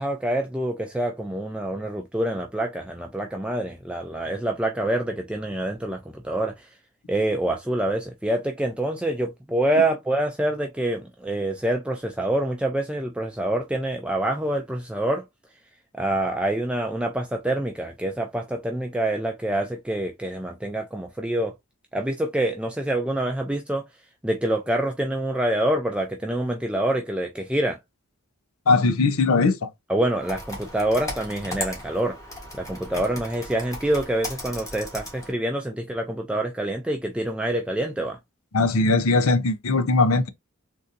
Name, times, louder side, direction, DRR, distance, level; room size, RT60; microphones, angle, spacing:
voice 1, 0.0-6.7 7.1-15.2 16.0-21.5 21.9-23.8 24.2-27.8 29.9-32.2 32.5-38.2, right 1 dB, 5° right, 0.4 m, -26 dB
voice 2, 28.7-29.7 38.5-40.3, left 3 dB, 80° left, 0.6 m, -20 dB
Computer keyboard, 30.2-35.3, left 1 dB, 15° left, 1.3 m, -36 dB
3.8 x 2.7 x 2.6 m
head